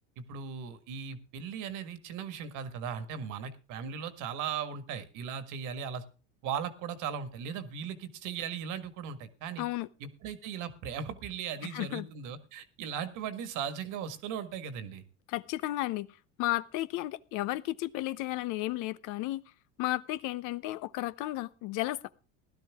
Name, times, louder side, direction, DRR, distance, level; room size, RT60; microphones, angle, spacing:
voice 1, 0.2-6.0 6.4-9.6 10.0-15.0, right 7 dB, 65° right, 1.8 m, -38 dB
voice 2, 9.6-9.9 11.7-12.1 15.3-16.1 16.4-19.4 19.8-22.0, left 17 dB, 65° left, 0.8 m, -33 dB
16.0 x 12.0 x 3.6 m
supercardioid pair, 105°, 33 cm